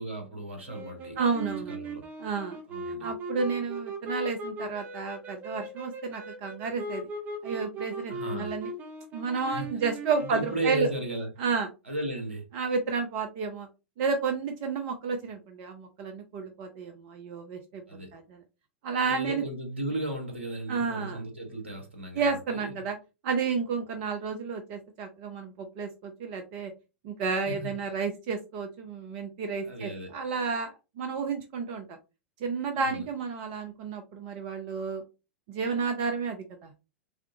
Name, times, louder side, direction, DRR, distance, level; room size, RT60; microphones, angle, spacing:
voice 1, 0.0-1.2 1.4-2.0 2.7-3.1 8.1-8.5 9.5-9.8 10.2-11.3 11.8-12.4 17.9-18.1 19.1-22.8 27.2-27.7 29.6-30.1 32.7-33.0, right 1 dB, 80° right, 1.4 m, -35 dB
sound 1, 0.7-11.2, right 2 dB, 25° right, 1.3 m, -39 dB
voice 2, 1.2-1.7 2.2-2.6 3.0-7.1 7.4-8.7 9.1-10.9 11.4-11.7 12.5-13.7 14.0-17.8 18.1-18.4 18.8-19.4 20.7-21.2 22.1-23.0 23.2-26.7 27.0-32.0 32.4-35.0 35.5-36.7, right 5 dB, 45° right, 0.6 m, -31 dB
3.6 x 3.5 x 2.8 m
figure-of-eight pair, 95°, 6 cm